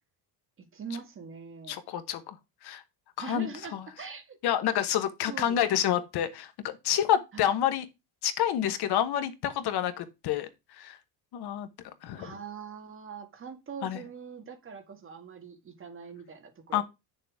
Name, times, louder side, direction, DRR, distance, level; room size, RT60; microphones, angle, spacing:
voice 1, 0.6-1.8 3.2-4.4 5.3-5.6 7.3-7.5 12.2-16.8, right 6 dB, 30° right, 1.7 m, -42 dB
voice 2, 1.7-2.4 2.6-2.8 3.2-3.9 4.4-7.8 8.2-10.5 10.8-11.0 11.3-11.7 12.0-12.3 13.8-14.0 16.7-16.8, left 10 dB, 65° left, 1.2 m, -28 dB
9.2 x 6.8 x 3.6 m
cardioid pair, 160°, 43 cm